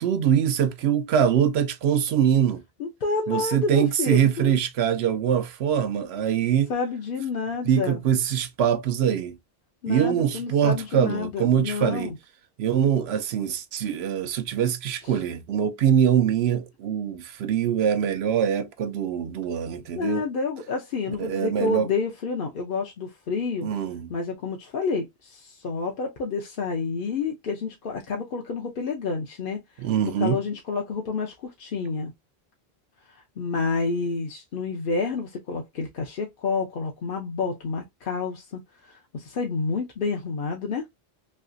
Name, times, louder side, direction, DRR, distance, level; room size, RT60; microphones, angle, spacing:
voice 1, 0.0-2.6 3.3-6.7 7.7-9.4 9.9-12.1 12.6-20.2 21.2-21.9 23.6-24.1 29.8-30.4, right 9 dB, 80° right, 0.8 m, -23 dB
voice 2, 2.8-4.6 6.7-8.0 9.8-12.2 15.0-15.2 20.0-23.7 24.1-32.1 33.1-40.8, left 4 dB, 60° left, 0.8 m, -29 dB
3.3 x 2.8 x 2.5 m
omnidirectional pair, 1.1 m